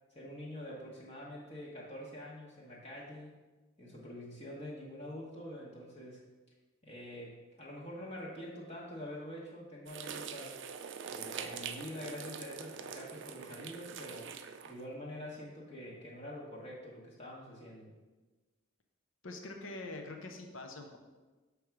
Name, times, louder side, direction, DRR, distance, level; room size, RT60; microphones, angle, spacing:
voice 1, 0.1-3.3 3.8-6.2 6.8-10.6 11.0-14.3 14.7-17.9, left 1 dB, 30° left, -5 dB, 1.1 m, -46 dB
sound 1, 9.9-14.8, right 7 dB, 60° right, 0.4 m, -44 dB
voice 2, 19.2-21.0, left 2 dB, 70° left, 4 dB, 0.8 m, -44 dB
6.3 x 3.4 x 5.9 m, 1.2 s
head